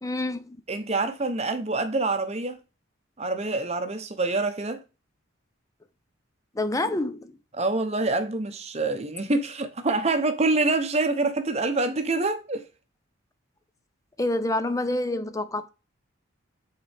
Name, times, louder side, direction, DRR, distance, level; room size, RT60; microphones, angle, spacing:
voice 1, 0.0-0.6 6.5-7.4 14.2-15.7, left 2 dB, 15° left, 0.5 m, -27 dB
voice 2, 0.7-2.6 3.2-4.8 7.5-12.6, right 3 dB, 30° right, 0.8 m, -26 dB
7.9 x 4.0 x 3.5 m
head